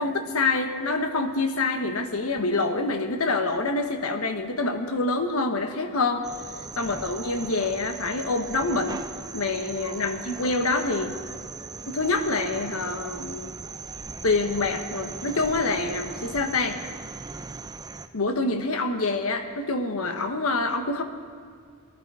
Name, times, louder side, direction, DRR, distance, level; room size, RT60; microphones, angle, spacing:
voice 1, 0.0-6.3 6.8-9.0 9.3-11.2 11.9-13.5 14.2-16.8 18.1-21.0, left 3 dB, 85° left, 6 dB, 1.2 m, -26 dB
sound 1, 6.2-18.1, right 4 dB, 20° right, 0.5 m, -39 dB
20.5 x 12.0 x 4.9 m, 2.1 s
head